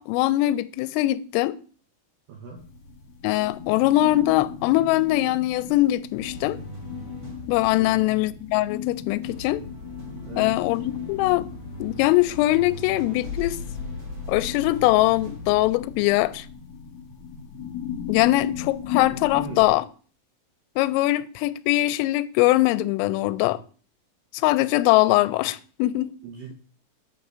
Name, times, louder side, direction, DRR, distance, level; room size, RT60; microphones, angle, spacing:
voice 1, 0.0-1.6 3.2-6.6 7.5-9.6 10.4-11.5 11.8-13.6 14.3-16.5 18.1-19.8 20.8-23.6 24.3-26.2, left 17 dB, 85° left, 3.1 m, -22 dB
voice 2, 2.3-2.6 7.7-8.0 10.2-10.5 19.3-19.7 26.2-26.5, right 5 dB, 80° right, 2.0 m, -39 dB
sound 1, 2.6-19.7, left 8 dB, 65° left, 3.0 m, -37 dB
sound 2, 6.1-8.8 9.2-16.0, left 2 dB, 25° right, 1.5 m, -39 dB
8.9 x 3.9 x 6.7 m
omnidirectional pair, 5.9 m